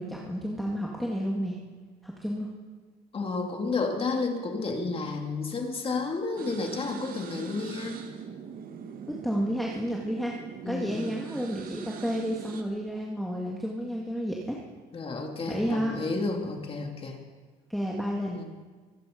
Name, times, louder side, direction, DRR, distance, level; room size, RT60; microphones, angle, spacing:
voice 1, 0.0-1.6 2.0-2.5 9.1-10.3 10.7-14.6 15.5-16.0 17.7-18.4, equal, ahead, -3 dB, 1.9 m, -31 dB
voice 2, 3.1-8.0 10.6-11.2 14.9-17.2 18.3-18.4, left 3 dB, 35° left, 2 dB, 2.6 m, -31 dB
sound 1, 6.4-12.6, right 7 dB, 60° right, 1.5 m, -41 dB
24.5 x 11.0 x 5.2 m, 1.4 s
cardioid pair, 110°, 17 cm